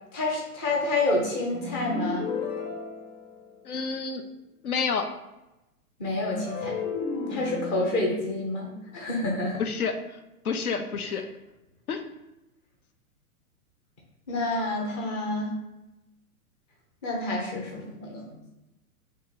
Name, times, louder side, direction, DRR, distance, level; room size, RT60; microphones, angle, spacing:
voice 1, 0.1-2.3 6.0-6.8 7.3-9.6 14.3-15.5 17.0-18.4, left 2 dB, 15° left, -1 dB, 0.4 m, -28 dB
sound 1, 1.5-3.9 6.3-9.6, left 4 dB, 40° left, 1.1 m, -34 dB
voice 2, 3.6-4.2 4.6-5.1 9.6-10.2 10.4-11.2 11.9-12.0, left 5 dB, 80° left, 7 dB, 0.6 m, -29 dB
3.0 x 2.8 x 3.8 m, 0.96 s
figure-of-eight pair, 110°, 44 cm